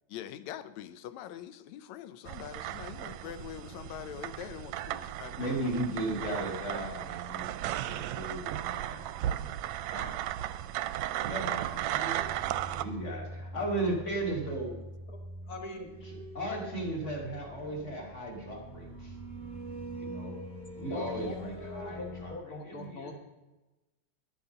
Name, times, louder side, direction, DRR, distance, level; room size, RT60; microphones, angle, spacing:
voice 1, 0.1-5.6, left 11 dB, 75° left, 14 dB, 1.8 m, -43 dB
sound 1, 2.3-12.8, right 13 dB, 80° right, 1.7 m, -35 dB
voice 2, 5.4-7.5 7.8-10.4 11.2-12.3 12.7-14.7 16.0-19.1 20.0-20.4 20.8-23.1, right 1 dB, 25° left, 1 dB, 2.2 m, -36 dB
sound 2, 12.2-22.4, equal, ahead, 1.7 m, -44 dB
voice 3, 15.5-15.9 20.9-23.1, left 3 dB, 50° left, 4 dB, 1.1 m, -42 dB
11.5 x 8.2 x 6.6 m, 1.1 s
omnidirectional pair, 3.4 m